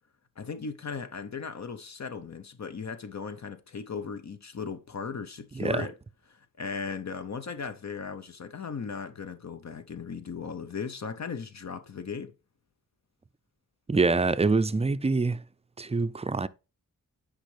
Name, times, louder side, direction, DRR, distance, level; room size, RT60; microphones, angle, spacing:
voice 1, 0.4-5.9 6.3-12.3, left 5 dB, 55° left, 0.8 m, -37 dB
voice 2, 5.6-5.9 13.9-15.4 15.8-16.5, right 3 dB, 20° right, 0.4 m, -25 dB
9.1 x 4.9 x 3.3 m
wide cardioid pair, 100°, 33 cm